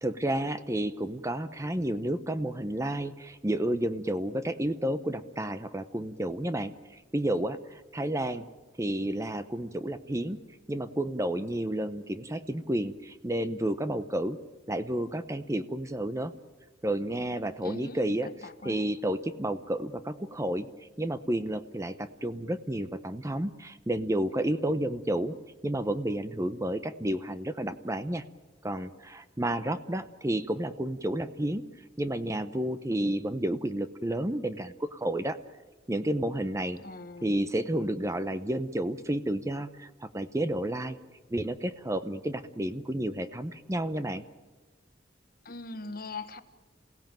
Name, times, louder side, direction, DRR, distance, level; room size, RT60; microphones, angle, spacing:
voice 1, 0.0-8.4 8.8-10.4 10.7-14.4 14.7-16.3 16.8-20.7 21.0-25.3 25.6-28.2 28.6-31.6 32.0-35.4 35.9-36.8 37.2-41.0 41.3-44.2, right 1 dB, 15° right, 12 dB, 0.7 m, -31 dB
voice 2, 17.6-18.1 18.4-18.8 36.8-37.3 45.4-46.4, left 3 dB, 50° left, 10 dB, 1.4 m, -41 dB
28.0 x 17.0 x 9.1 m, 1.3 s
head